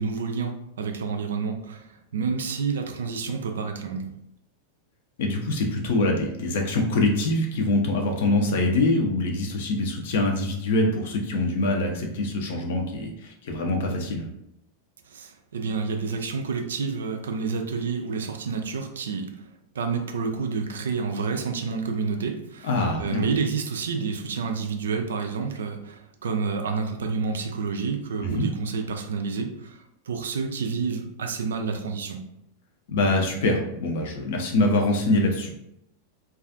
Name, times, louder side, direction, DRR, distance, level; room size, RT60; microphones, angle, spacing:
voice 1, 0.0-4.1 15.0-19.5 19.7-22.7 23.0-32.3, right 5 dB, 65° right, 5 dB, 0.3 m, -29 dB
voice 2, 5.2-14.3 22.6-23.2 28.2-28.5 32.9-35.5, left 2 dB, 55° left, 2 dB, 0.5 m, -24 dB
2.3 x 2.3 x 2.4 m, 0.80 s
figure-of-eight pair, 90°, 0 cm